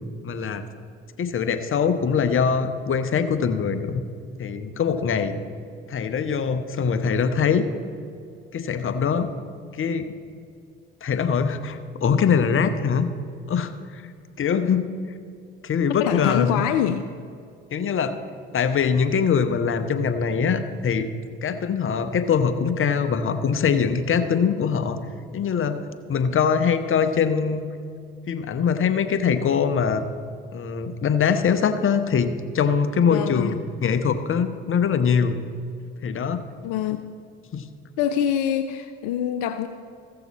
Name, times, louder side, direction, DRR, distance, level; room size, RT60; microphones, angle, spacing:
voice 1, 0.2-0.7 1.2-4.0 4.4-5.3 5.9-7.7 8.5-9.3 9.8-10.1 11.0-13.1 13.5-14.0 14.4-14.9 15.6-16.6 17.7-18.2 18.5-21.1 21.4-25.0 25.3-25.8 26.1-27.7 28.3-30.0 30.5-35.4 36.0-36.4 37.5-37.6, left 6 dB, 40° left, 9 dB, 0.9 m, -22 dB
voice 2, 16.0-17.0 33.0-33.5 36.6-37.0 38.0-39.7, left 10 dB, 75° left, 10 dB, 0.5 m, -24 dB
14.5 x 6.9 x 4.1 m, 2.4 s
hypercardioid pair, 60°, 31 cm